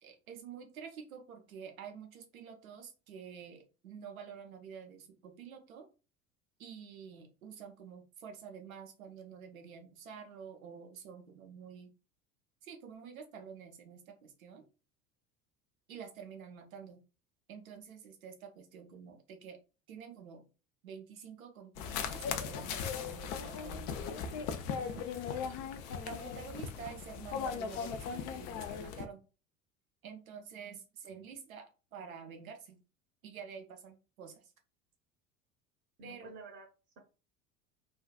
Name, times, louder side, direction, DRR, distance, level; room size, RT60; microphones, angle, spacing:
voice 1, 0.0-5.9 6.6-11.9 12.6-14.6 15.9-17.0 17.5-19.6 19.9-20.4 20.8-24.2 24.9-25.1 26.0-29.2 30.0-32.8 33.2-34.5 36.0-36.3, right 7 dB, 75° right, 4 dB, 0.7 m, -49 dB
sound 1, 21.8-29.1, left 6 dB, 45° left, 0.4 m, -38 dB
voice 2, 24.7-25.1 25.3-25.5 36.0-36.6, right 3 dB, 40° right, 1 dB, 0.8 m, -51 dB
2.5 x 2.2 x 2.2 m, 0.32 s
figure-of-eight pair, 65°, 41 cm